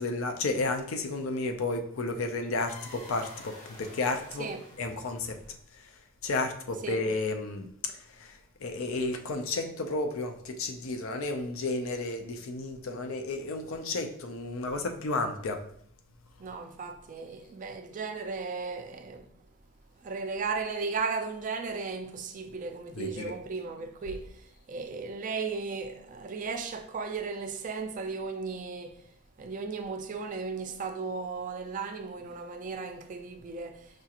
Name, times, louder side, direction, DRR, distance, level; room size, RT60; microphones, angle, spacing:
voice 1, 0.0-3.5 3.8-4.5 4.8-5.4 6.2-7.7 8.6-15.6 22.9-23.3, left 3 dB, 70° left, 0.5 m, -32 dB
sound 1, 2.7-5.8, left 1 dB, 35° left, 0.8 m, -49 dB
voice 2, 16.4-19.3 20.0-24.3 24.7-29.0 29.4-33.8, right 4 dB, 40° right, 0.4 m, -35 dB
4.9 x 2.4 x 2.8 m
head